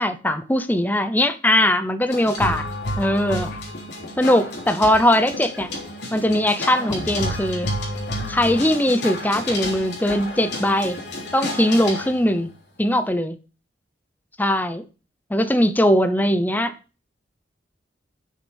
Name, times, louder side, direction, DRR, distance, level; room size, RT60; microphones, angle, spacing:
voice 1, 0.0-2.7 3.0-3.5 4.2-5.7 6.1-7.7 8.3-11.0 11.3-12.5 12.8-13.4 14.4-14.8 15.3-16.7, left 1 dB, 10° left, 0.6 m, -20 dB
sound 1, 2.1-12.3, left 1 dB, 65° left, 3.3 m, -30 dB
7.0 x 6.6 x 5.2 m
head